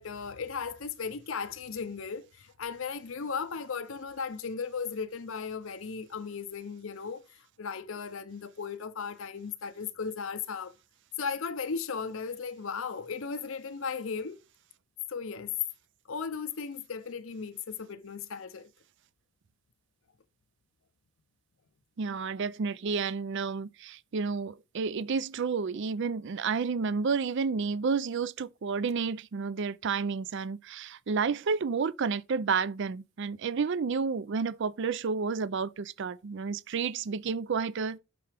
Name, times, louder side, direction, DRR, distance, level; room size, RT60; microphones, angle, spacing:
voice 1, 0.0-10.7 11.2-14.4 15.1-15.6 16.1-18.7, left 5 dB, 65° left, 0.6 m, -36 dB
voice 2, 22.0-38.0, right 5 dB, 55° right, 0.4 m, -31 dB
7.5 x 5.8 x 3.4 m
head